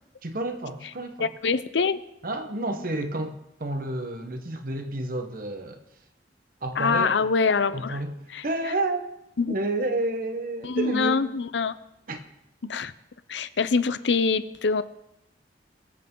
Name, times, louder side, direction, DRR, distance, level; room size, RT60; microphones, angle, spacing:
voice 1, 0.2-1.3 2.2-5.8 6.6-7.3 7.7-9.0 9.5-11.3 12.1-12.2, right 2 dB, 50° right, 6 dB, 1.2 m, -30 dB
voice 2, 1.2-2.0 6.8-8.0 8.3-8.4 9.4-9.5 10.6-11.7 12.6-12.9 13.3-14.8, left 4 dB, 80° left, 14 dB, 0.6 m, -24 dB
21.0 x 8.1 x 3.8 m, 0.85 s
head